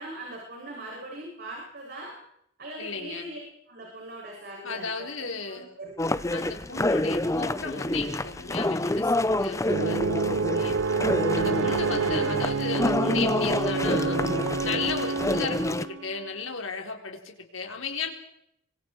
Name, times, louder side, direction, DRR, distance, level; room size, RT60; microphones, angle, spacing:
voice 1, 0.0-2.1 2.6-3.4 3.7-6.3, right 1 dB, 50° right, -2 dB, 7.7 m, -41 dB
voice 2, 2.8-3.3 4.6-5.6 6.3-10.2 10.6-10.7 11.4-14.2 14.6-18.1, left 5 dB, 85° left, 3 dB, 4.2 m, -35 dB
sound 1, 6.0-15.8, left 1 dB, 15° left, 0.8 m, -28 dB
sound 2, 9.7-16.1, right 4 dB, 80° right, 0.8 m, -28 dB
26.0 x 25.5 x 4.8 m, 0.73 s
head